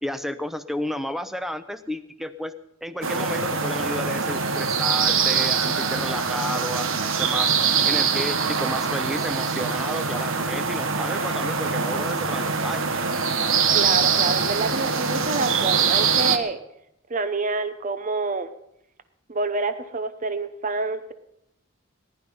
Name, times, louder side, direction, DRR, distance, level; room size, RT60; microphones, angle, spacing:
voice 1, 0.0-2.5 2.8-12.9, equal, ahead, 11 dB, 0.7 m, -32 dB
sound 1, 3.0-16.4, right 5 dB, 70° right, 1.3 m, -23 dB
voice 2, 13.7-16.6 17.1-18.5 19.3-21.1, right 3 dB, 40° right, 12 dB, 0.8 m, -27 dB
20.0 x 11.0 x 5.6 m, 0.80 s
head